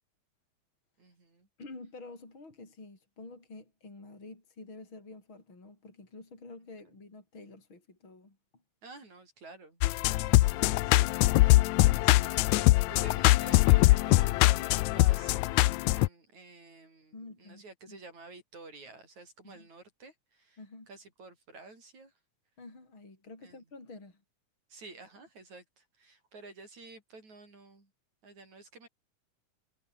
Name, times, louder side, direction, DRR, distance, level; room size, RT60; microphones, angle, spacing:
voice 1, 1.0-1.5 8.8-15.7 15.9-20.6 20.9-22.1 23.4-23.6 24.7-27.9 28.2-28.9, right 3 dB, 60° right, 8.7 m, -51 dB
voice 2, 1.6-8.4 17.1-18.0 19.4-19.7 20.6-20.9 22.6-24.2, left 3 dB, 35° left, 7.1 m, -49 dB
sound 1, 9.8-16.1, left 19 dB, 80° left, 1.7 m, -23 dB
omnidirectional pair, 3.7 m